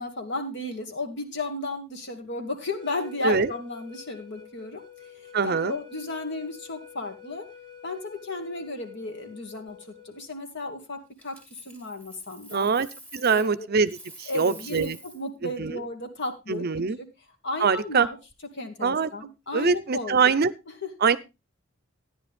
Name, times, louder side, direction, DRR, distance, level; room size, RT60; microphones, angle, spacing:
voice 1, 0.0-4.8 5.1-7.5 7.8-9.8 10.0-11.4 11.7-12.7 13.3-13.7 14.3-16.7 17.0-17.1 17.4-18.2 18.5-20.4 20.8-20.9, left 2 dB, 60° left, 5 dB, 2.3 m, -34 dB
sound 1, 2.5-10.3, left 8 dB, 25° left, 1.9 m, -48 dB
voice 2, 5.3-5.8 12.5-12.9 13.1-13.9 14.2-15.0 15.6-15.8 16.5-17.0 17.6-18.1 18.8-19.1 19.5-20.5 21.0-21.2, right 5 dB, 50° right, 17 dB, 0.6 m, -23 dB
Coin (dropping), 11.2-13.6 13.8-15.3 18.1-18.3, right 1 dB, 5° left, 2.2 m, -47 dB
14.0 x 10.0 x 3.4 m, 0.26 s
head